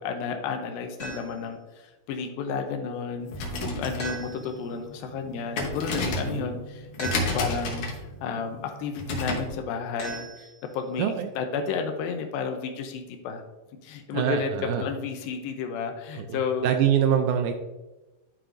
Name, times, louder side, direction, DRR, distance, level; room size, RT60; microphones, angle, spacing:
voice 1, 0.0-7.9 8.2-10.5 10.7-13.4 13.8-16.8, left 5 dB, 85° left, 5 dB, 2.5 m, -32 dB
sound 1, 1.0-1.5 4.0-4.7 7.0-7.7 10.0-10.9, right 2 dB, 35° left, 1.8 m, -38 dB
sound 2, 3.2-9.6, left 1 dB, 65° left, 2.3 m, -32 dB
voice 2, 11.0-11.3 14.1-14.8 16.2-17.5, right 9 dB, 85° right, 6 dB, 1.8 m, -25 dB
11.5 x 4.8 x 2.5 m, 1.1 s
omnidirectional pair, 4.0 m